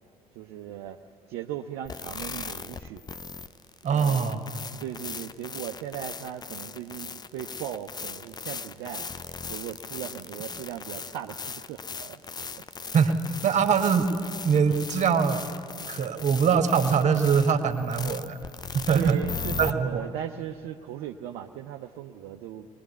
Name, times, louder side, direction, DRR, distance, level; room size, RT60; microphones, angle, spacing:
voice 1, 0.3-1.0 1.3-3.0 3.8-4.3 4.8-12.2 18.7-22.7, right 11 dB, 60° right, 5 dB, 0.7 m, -38 dB
sound 1, 1.9-19.7, left 5 dB, 20° left, 0.6 m, -38 dB
voice 2, 3.8-4.6 12.9-14.1 14.4-15.4 15.9-18.4 18.7-19.2 19.6-20.0, right 6 dB, 40° right, 7 dB, 1.6 m, -23 dB
22.0 x 21.5 x 8.2 m, 2.5 s
figure-of-eight pair, 50°, 19 cm